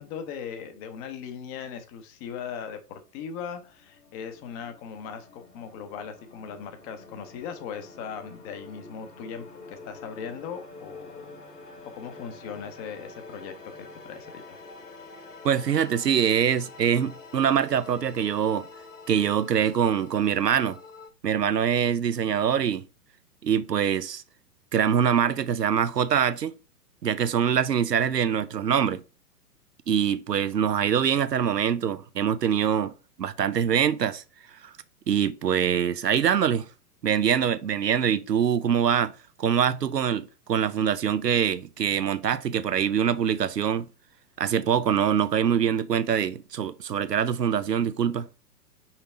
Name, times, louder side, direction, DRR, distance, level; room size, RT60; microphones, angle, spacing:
voice 1, 0.0-11.3 11.6-14.6, left 7 dB, 25° left, 0.8 m, -39 dB
sound 1, 2.8-21.1, left 3 dB, 75° left, 2.7 m, -47 dB
voice 2, 15.4-18.7 19.1-20.8 21.2-22.8 23.4-24.2 24.7-26.5 27.0-29.0 29.9-32.9 33.2-34.2 34.6-34.7 35.1-36.7 37.0-39.1 39.4-43.9 44.4-48.3, right 8 dB, 80° right, 0.7 m, -24 dB
5.8 x 3.9 x 4.3 m
figure-of-eight pair, 115°, 48 cm